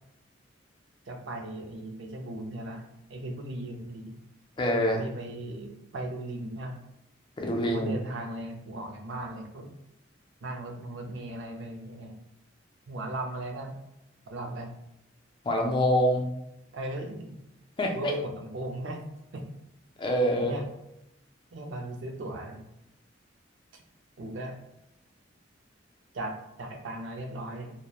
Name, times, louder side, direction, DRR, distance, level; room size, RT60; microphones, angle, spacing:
voice 1, 1.1-4.2 5.0-6.8 7.6-9.7 10.4-12.1 12.9-13.8 14.3-14.7 16.7-17.4 17.9-19.0 19.3-19.4 20.4-20.7 21.5-22.6 23.7-23.8 24.2-24.6 26.1-27.7, right 1 dB, 70° right, 3 dB, 0.5 m, -37 dB
voice 2, 4.6-5.1 7.4-8.0 15.4-16.3 17.8-18.1 20.0-20.5, equal, 25° left, 1 dB, 0.4 m, -25 dB
2.9 x 2.0 x 2.2 m, 0.85 s
head